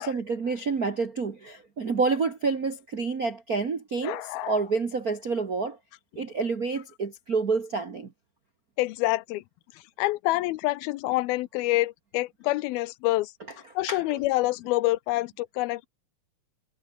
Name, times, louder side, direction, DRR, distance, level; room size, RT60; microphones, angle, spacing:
voice 1, 0.0-5.8 6.1-8.1 13.9-14.2, right 4 dB, 60° right, 0.9 m, -28 dB
voice 2, 4.0-4.5 8.8-9.4 10.0-13.3 13.8-15.9, left 18 dB, 80° left, 2.5 m, -27 dB
omnidirectional pair, 4.4 m